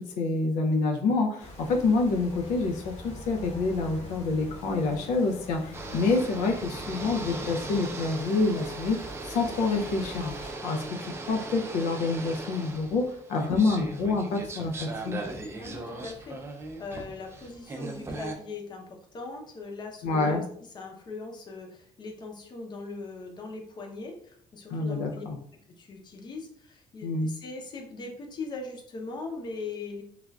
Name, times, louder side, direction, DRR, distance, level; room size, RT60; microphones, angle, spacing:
voice 1, 0.2-15.2 20.0-20.4 24.7-25.4 27.0-27.3, left 3 dB, 85° left, 3 dB, 0.4 m, -27 dB
sound 1, 1.4-10.5, left 1 dB, 65° left, 1.1 m, -45 dB
sound 2, 5.7-18.3, right 2 dB, 20° right, 0.4 m, -38 dB
voice 2, 15.6-20.4 20.7-25.2 25.8-30.0, left 3 dB, 35° left, 2 dB, 0.6 m, -40 dB
3.2 x 2.4 x 2.3 m, 0.62 s
cardioid pair, 130°, 12 cm